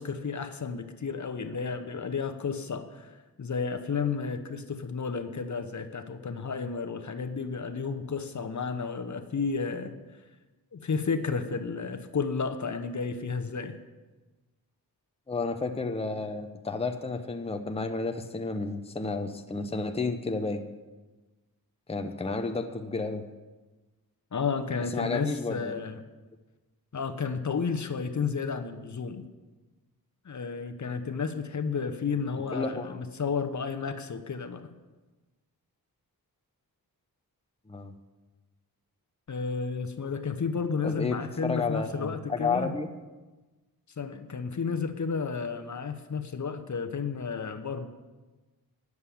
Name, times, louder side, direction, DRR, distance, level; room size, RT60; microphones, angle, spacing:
voice 1, 0.0-9.9 10.7-13.8 24.3-26.0 26.9-29.3 30.2-34.7 39.3-42.7 44.0-47.9, left 5 dB, 50° left, 7 dB, 1.0 m, -32 dB
voice 2, 15.3-20.6 21.9-23.2 24.9-25.7 32.5-33.0 37.7-37.9 40.8-42.9, left 3 dB, 15° left, 6 dB, 0.8 m, -31 dB
9.6 x 7.1 x 8.5 m, 1.2 s
wide cardioid pair, 70°, 36 cm